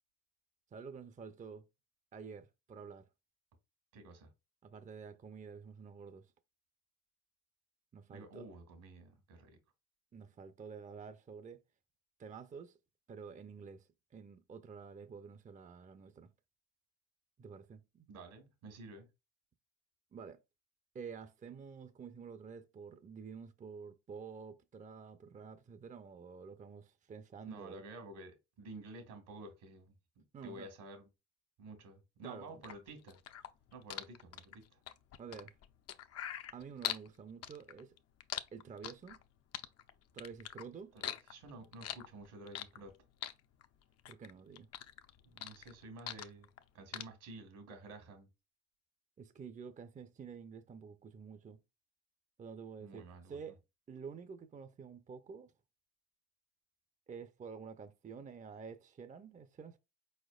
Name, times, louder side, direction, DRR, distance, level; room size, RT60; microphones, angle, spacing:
voice 1, 0.7-1.7 2.1-3.1 4.6-6.3 7.9-8.5 10.1-11.6 12.2-12.8 13.1-16.3 17.4-18.1 20.1-20.4 20.9-27.8 30.3-30.7 32.2-32.6 35.2-35.5 36.5-38.0 38.5-39.2 40.1-40.9 44.1-44.7 49.2-51.6 52.4-53.6 53.9-55.5 57.1-59.8, right 6 dB, 25° right, 0.5 m, -49 dB
voice 2, 3.9-4.3 8.1-9.6 18.1-19.1 27.5-29.9 30.4-31.1 31.6-33.2 33.7-34.8 40.9-42.9 45.2-46.5 46.7-48.3 52.8-53.5, right 2 dB, 75° right, 1.8 m, -51 dB
sound 1, 32.6-37.1 37.4-39.2 39.5-40.6 41.0-42.9 43.2-44.3 44.6-46.6 46.9-47.0, left 10 dB, 55° left, 0.6 m, -42 dB
4.5 x 4.2 x 2.3 m
supercardioid pair, 70°, 31 cm